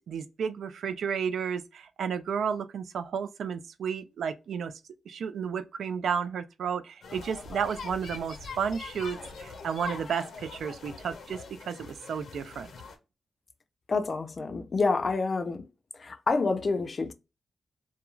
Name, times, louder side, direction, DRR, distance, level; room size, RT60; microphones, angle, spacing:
voice 1, 0.1-4.7 5.1-12.7, right 7 dB, 90° right, 0.3 m, -32 dB
sound 1, 7.0-13.0, left 4 dB, 80° left, 0.6 m, -43 dB
voice 2, 13.9-15.7 15.9-17.1, left 3 dB, 40° left, 0.3 m, -28 dB
2.4 x 2.2 x 3.0 m
wide cardioid pair, 125°, 0 cm